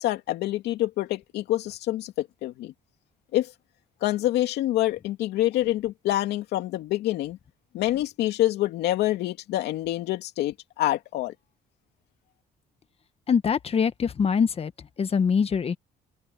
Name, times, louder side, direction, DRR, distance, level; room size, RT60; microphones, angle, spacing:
voice 1, 0.0-2.7 3.3-3.5 4.0-7.4 7.7-11.3, left 15 dB, 80° left, 2.6 m, -26 dB
voice 2, 13.3-14.7 15.0-15.8, left 6 dB, 35° left, 1.5 m, -23 dB
open air
cardioid pair, 110°, 17 cm